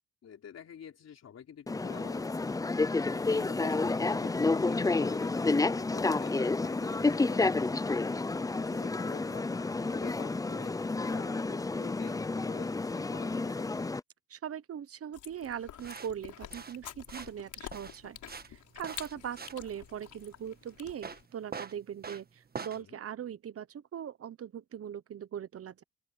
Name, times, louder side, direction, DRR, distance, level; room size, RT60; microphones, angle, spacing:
voice 1, 0.2-2.4 3.2-7.9 8.6-13.8 22.7-23.0, left 8 dB, 55° left, 4.2 m, -49 dB
sound 1, 1.7-14.0, left 3 dB, 10° left, 0.5 m, -30 dB
voice 2, 14.3-18.2 18.5-25.8, right 9 dB, 50° right, 1.1 m, -41 dB
Chewing mastication, 15.1-21.3, left 11 dB, 75° left, 6.0 m, -48 dB
sound 2, 15.8-22.8, right 5 dB, 30° right, 1.5 m, -45 dB
open air
cardioid pair, 90°, 30 cm